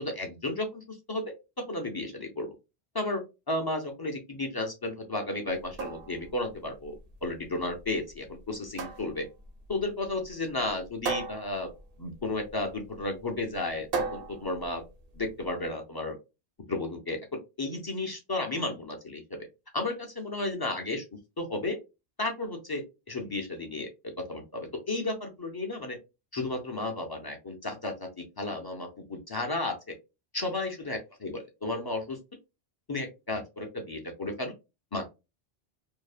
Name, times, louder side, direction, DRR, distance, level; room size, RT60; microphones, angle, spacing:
voice 1, 0.0-2.6 2.9-6.9 7.2-9.3 9.7-11.7 12.0-14.8 15.1-16.2 16.7-17.2 17.6-19.5 19.7-21.0 21.4-21.8 22.2-23.9 24.2-26.0 26.3-30.0 30.3-32.2 32.9-34.5 34.9-35.1, left 2 dB, 35° left, 2 dB, 0.4 m, -33 dB
sound 1, 5.5-15.5, right 4 dB, 65° right, 0.8 m, -39 dB
2.6 x 2.1 x 2.4 m, 0.25 s
omnidirectional pair, 1.1 m